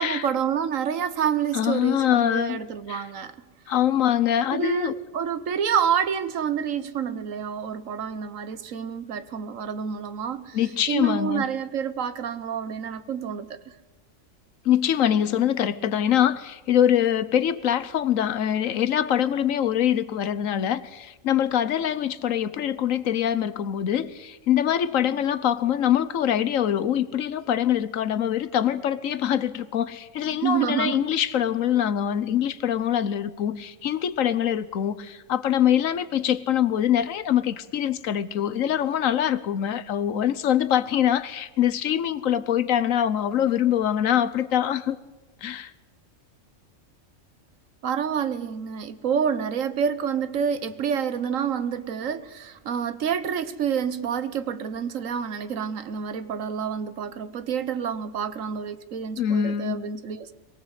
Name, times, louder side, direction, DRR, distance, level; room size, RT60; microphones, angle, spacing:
voice 1, 0.0-3.3 4.5-10.6 10.9-13.8 25.1-25.2 30.3-31.0 47.8-60.3, right 7 dB, 75° right, 1.4 m, -28 dB
voice 2, 1.5-2.6 2.9-3.1 3.7-5.0 10.5-11.4 14.6-45.0 45.4-45.7 59.2-59.9, left 10 dB, 80° left, 1.3 m, -24 dB
23.0 x 18.0 x 8.2 m
omnidirectional pair, 1.4 m